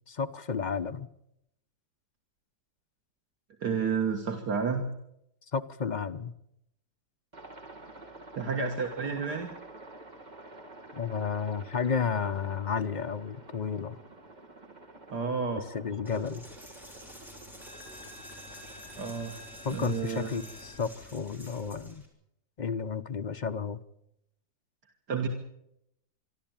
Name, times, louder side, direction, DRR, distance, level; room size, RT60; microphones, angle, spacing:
voice 1, 0.1-1.1 5.5-6.3 10.9-14.0 15.7-16.4 19.6-22.0 22.6-23.8, left 6 dB, 35° left, 8 dB, 0.7 m, -32 dB
voice 2, 3.6-4.8 8.3-9.5 15.1-15.7 19.0-19.3 19.7-20.3 25.1-25.3, right 5 dB, 75° right, 3 dB, 2.2 m, -30 dB
Aircraft, 7.3-20.8, right 2 dB, 25° right, 2.3 m, -49 dB
Coin (dropping), 16.1-22.1, left 1 dB, ahead, 4.7 m, -48 dB
26.5 x 12.0 x 8.9 m, 0.80 s
omnidirectional pair, 1.8 m